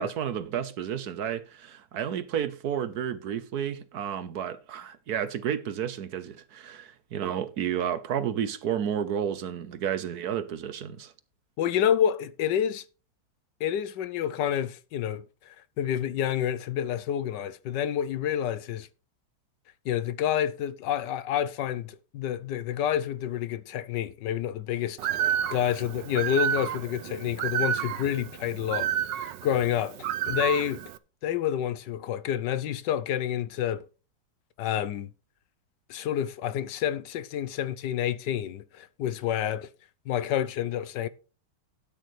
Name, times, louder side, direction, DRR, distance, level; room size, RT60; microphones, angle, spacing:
voice 1, 0.0-11.1, right 9 dB, 65° right, 1.2 m, -31 dB
voice 2, 11.6-12.8 13.6-18.9 19.8-25.1 25.5-30.8 31.2-33.8 34.6-35.1 35.9-39.7 40.1-41.1, left 10 dB, 70° left, 1.3 m, -29 dB
Bird, 25.0-31.0, right 10 dB, 80° right, 1.4 m, -30 dB
13.0 x 9.3 x 3.2 m
omnidirectional pair, 2.0 m